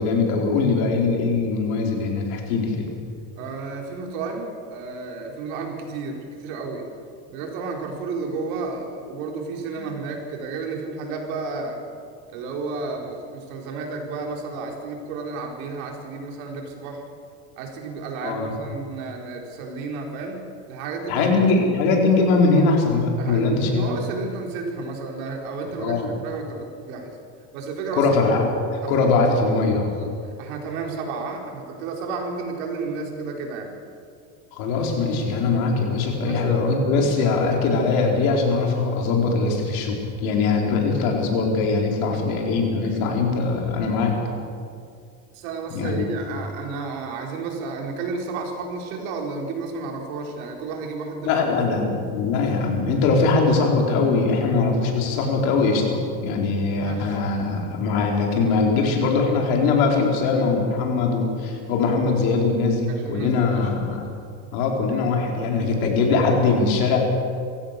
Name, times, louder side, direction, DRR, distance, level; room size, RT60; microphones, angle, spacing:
voice 1, 0.0-2.9 9.8-9.9 18.2-18.5 21.1-23.8 25.8-26.1 28.0-29.9 34.6-44.2 45.7-46.0 51.2-64.0 64.5-67.0, left 4 dB, 85° left, 0 dB, 4.9 m, -21 dB
voice 2, 3.4-6.9 7.3-11.8 12.3-17.1 17.6-21.3 23.2-27.2 27.5-28.1 28.8-29.6 29.9-33.8 36.3-36.5 42.0-42.2 42.8-42.9 45.3-51.5 56.8-57.2 62.9-64.0, right 4 dB, 85° right, 1 dB, 4.6 m, -32 dB
26.0 x 15.5 x 6.9 m, 2.4 s
cardioid pair, 135°, 41 cm